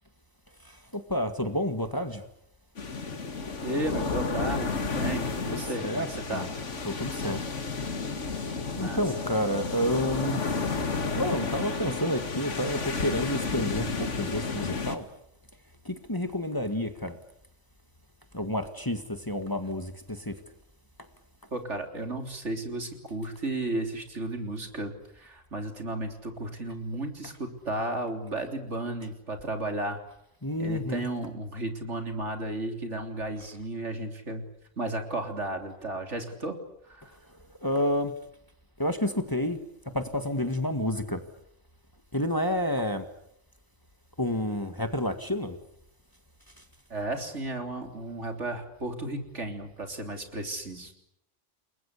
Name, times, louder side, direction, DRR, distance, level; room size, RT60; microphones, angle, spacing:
voice 1, 0.7-2.2 5.5-6.5 6.8-7.5 8.3-8.5 8.8-10.7 11.1-15.1 15.9-17.2 18.3-20.4 30.4-31.1 37.6-38.1 38.8-39.6 39.9-41.2 42.1-43.1 44.2-45.6, left 1 dB, 15° left, 1.9 m, -30 dB
sound 1, 2.8-15.0, left 4 dB, 75° left, 2.3 m, -32 dB
voice 2, 3.6-6.5 8.8-9.0 21.5-30.0 30.6-34.4 34.8-36.6 36.8-37.2 46.9-50.9, right 2 dB, 70° right, 3.8 m, -34 dB
29.5 x 21.5 x 8.4 m
omnidirectional pair, 1.2 m